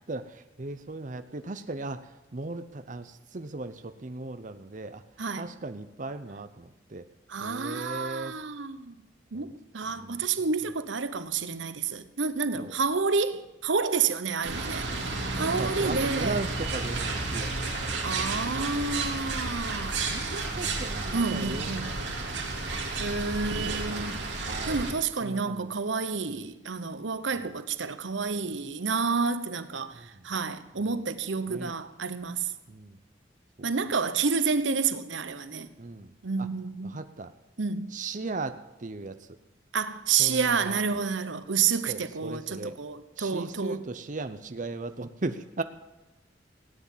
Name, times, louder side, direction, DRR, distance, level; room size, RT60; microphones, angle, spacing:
voice 1, 0.1-5.0 5.4-7.1 7.4-8.4 9.3-9.5 9.8-10.2 10.7-10.8 12.5-12.7 15.4-17.8 19.8-20.3 20.6-22.9 23.7-24.8 25.2-25.7 26.3-26.4 29.9-30.3 31.5-31.7 32.7-33.0 33.6-33.7 35.8-36.5 36.8-37.3 37.9-39.4 40.2-41.0 41.9-42.7 43.2-45.6, right 3 dB, 45° right, 0.7 m, -38 dB
voice 2, 5.2-5.5 7.3-8.9 9.3-16.4 18.0-20.5 21.1-21.9 23.0-24.3 24.7-32.5 33.6-35.7 36.2-37.0 37.6-37.9 39.7-43.8, right 5 dB, 90° right, 1.0 m, -29 dB
sound 1, 14.4-24.9, right 3 dB, 70° right, 3.1 m, -32 dB
17.5 x 9.7 x 7.3 m
head